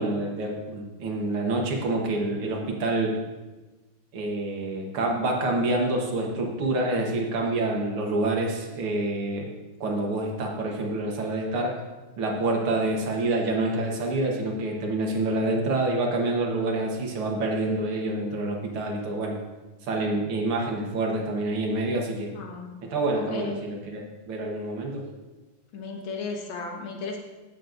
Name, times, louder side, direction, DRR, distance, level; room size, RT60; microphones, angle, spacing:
voice 1, 0.0-3.2 4.1-9.5 9.8-11.8 12.2-19.3 19.8-22.3 22.9-25.1, right 2 dB, 80° right, 1 dB, 2.3 m, -27 dB
voice 2, 22.3-22.7 23.2-23.7 25.7-27.2, left 4 dB, 65° left, 1 dB, 2.1 m, -35 dB
16.0 x 7.7 x 2.6 m, 1.2 s
omnidirectional pair, 2.4 m